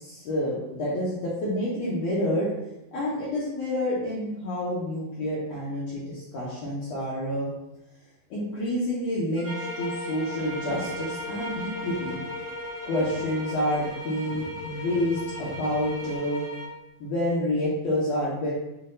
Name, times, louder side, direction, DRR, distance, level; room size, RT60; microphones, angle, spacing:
voice 1, 0.0-2.5 2.9-7.5 8.3-12.2 12.8-16.4 17.0-18.5, left 1 dB, 85° left, -7 dB, 1.5 m, -28 dB
sound 1, 9.4-16.8, left 2 dB, 65° left, 1.4 m, -36 dB
Trumpet, 9.4-14.0, right 5 dB, 90° right, 2.2 m, -42 dB
sound 2, 10.4-16.2, right 1 dB, 70° right, 1.6 m, -46 dB
5.8 x 2.1 x 2.6 m, 0.93 s
omnidirectional pair, 3.8 m